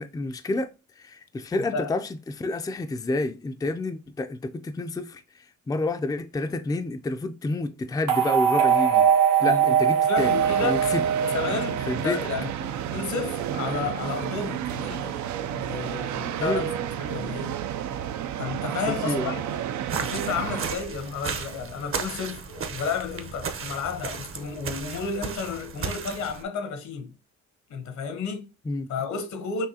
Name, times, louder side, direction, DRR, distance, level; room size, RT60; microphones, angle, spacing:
voice 1, 0.0-9.1 9.4-11.0 11.9-12.2 16.4-16.7 18.9-19.3 28.7-28.9, left 2 dB, 15° left, 0.4 m, -29 dB
sound 1, 8.1-12.3, right 8 dB, 85° right, 0.9 m, -22 dB
voice 2, 9.4-10.8 11.2-15.2 15.5-16.7 17.0-17.6 18.4-19.4 20.0-27.1 27.7-28.5 28.9-29.7, left 5 dB, 70° left, 1.0 m, -32 dB
sound 2, 10.2-20.8, right 10 dB, 70° right, 0.5 m, -31 dB
sound 3, 19.9-26.4, right 5 dB, 45° right, 0.8 m, -35 dB
6.2 x 2.6 x 2.8 m
cardioid pair, 90°, 30 cm